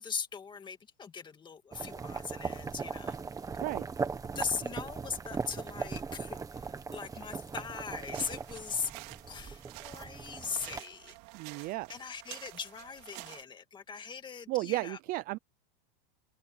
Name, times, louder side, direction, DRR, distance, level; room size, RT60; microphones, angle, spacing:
voice 1, 0.0-3.2 4.4-8.9 9.3-15.0, left 6 dB, 15° left, 2.2 m, -40 dB
sound 1, 1.7-10.8, right 5 dB, 10° right, 1.5 m, -39 dB
sound 2, 7.9-13.4, right 25 dB, 50° right, 3.9 m, -49 dB
voice 2, 11.3-11.9 14.5-15.4, right 19 dB, 30° right, 0.5 m, -33 dB
open air
supercardioid pair, 160°, 30 cm